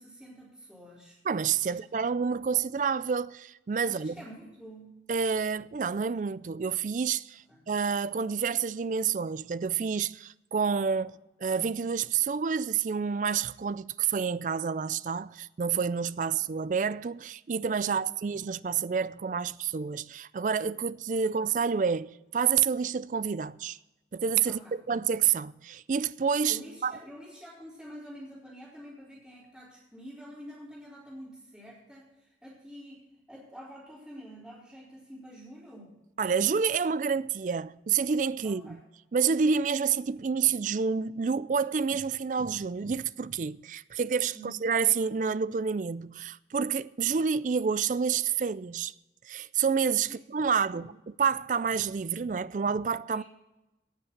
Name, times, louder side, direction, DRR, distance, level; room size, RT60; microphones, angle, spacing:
voice 1, 0.0-1.2 1.7-1.8 3.8-4.9 7.5-7.6 17.8-18.1 21.2-21.4 24.4-24.8 26.5-36.0 38.4-38.8 44.3-44.6 50.0-50.9 53.1-53.2, equal, 5° right, 3.6 m, -48 dB
voice 2, 1.3-4.2 5.1-23.8 24.1-24.6 24.9-26.9 36.2-38.8 39.1-48.9 49.3-50.9 51.2-53.2, right 6 dB, 45° right, 0.4 m, -28 dB
18.0 x 6.5 x 5.9 m
head